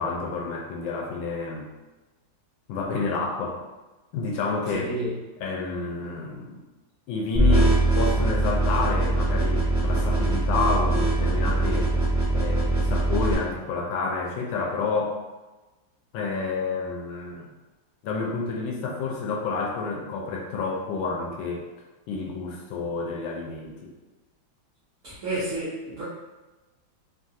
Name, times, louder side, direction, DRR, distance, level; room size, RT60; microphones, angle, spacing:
voice 1, 0.0-1.7 2.7-3.6 4.1-4.9 5.4-6.6 7.1-11.9 12.3-15.2 16.1-17.5 18.0-21.7 22.1-23.9, left 4 dB, 85° left, -1 dB, 1.3 m, -29 dB
voice 2, 4.7-5.1 25.0-26.0, right 2 dB, 55° right, -10 dB, 1.0 m, -30 dB
sound 1, 7.3-13.3, right 2 dB, 5° right, 0.9 m, -22 dB
3.3 x 2.3 x 2.6 m, 1.1 s
omnidirectional pair, 2.1 m